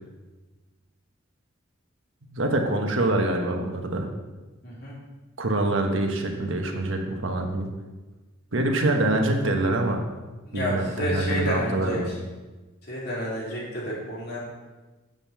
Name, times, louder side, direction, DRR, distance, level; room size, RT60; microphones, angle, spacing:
voice 1, 2.3-4.1 5.4-7.7 8.5-10.0 10.5-12.1, right 2 dB, 80° right, 3 dB, 1.3 m, -25 dB
voice 2, 4.6-5.0 10.5-12.1 12.8-14.4, equal, 55° left, -5 dB, 3.2 m, -30 dB
7.6 x 5.4 x 7.3 m, 1.2 s
head